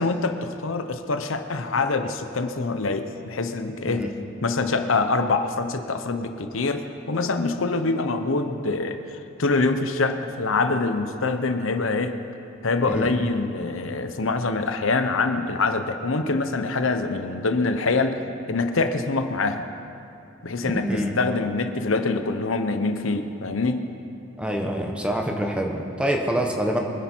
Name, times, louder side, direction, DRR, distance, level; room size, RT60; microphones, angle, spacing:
voice 1, 0.0-4.1 4.4-12.2 12.6-19.6 20.4-23.9, left 3 dB, 80° left, 8 dB, 0.9 m, -25 dB
voice 2, 20.6-21.2 24.4-26.8, equal, 5° right, 2 dB, 1.2 m, -26 dB
24.0 x 10.5 x 4.5 m, 2.7 s
head